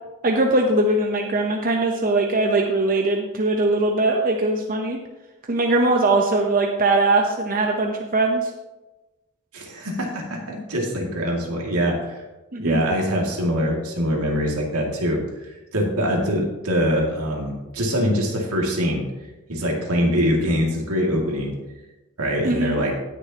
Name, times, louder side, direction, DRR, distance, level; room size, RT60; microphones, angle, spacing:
voice 1, 0.2-5.0 5.5-8.5 12.5-12.8 22.4-22.8, right 2 dB, 40° right, 2 dB, 0.8 m, -21 dB
voice 2, 9.5-12.2 12.6-19.0 19.5-21.5 22.2-22.9, equal, 75° right, -1 dB, 2.3 m, -23 dB
18.0 x 6.6 x 2.9 m, 1.1 s
head